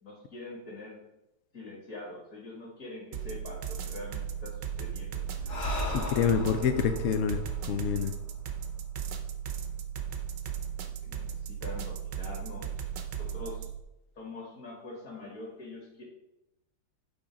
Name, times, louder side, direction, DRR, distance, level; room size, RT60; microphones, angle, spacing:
voice 1, 0.0-1.1 1.5-5.3 11.0-12.7 13.2-13.7 14.2-16.0, left 2 dB, 45° left, -3 dB, 2.0 m, -44 dB
sound 1, 3.1-13.8, right 8 dB, 75° right, 1.3 m, -36 dB
Breathing, 5.4-8.9, left 1 dB, 65° left, 2.1 m, -37 dB
voice 2, 5.9-8.2, left 7 dB, 85° left, 9 dB, 0.7 m, -27 dB
8.8 x 3.7 x 5.1 m, 0.91 s
omnidirectional pair, 2.0 m